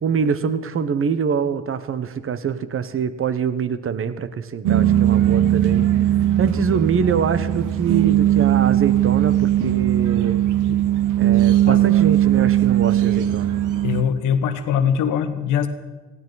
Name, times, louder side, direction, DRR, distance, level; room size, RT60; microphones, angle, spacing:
voice 1, 0.0-5.9 6.4-10.4 11.2-13.5, right 6 dB, 45° right, 12 dB, 1.0 m, -24 dB
sound 1, 4.6-14.0, right 12 dB, 85° right, 1.0 m, -18 dB
voice 2, 13.8-15.7, left 8 dB, 90° left, 9 dB, 1.4 m, -22 dB
18.5 x 16.0 x 4.1 m, 1.3 s
cardioid pair, 90°, 30 cm